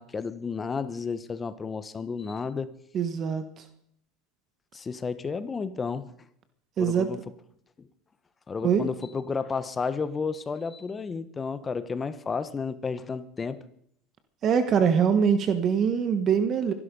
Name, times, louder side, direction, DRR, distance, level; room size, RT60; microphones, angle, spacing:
voice 1, 0.0-2.7 4.7-6.1 6.8-7.2 8.5-13.6, left 5 dB, 20° left, 1.1 m, -32 dB
voice 2, 2.9-3.6 6.8-7.1 8.6-8.9 14.4-16.7, right 7 dB, 40° right, 1.4 m, -23 dB
23.5 x 11.0 x 5.4 m
supercardioid pair, 115°, 0 cm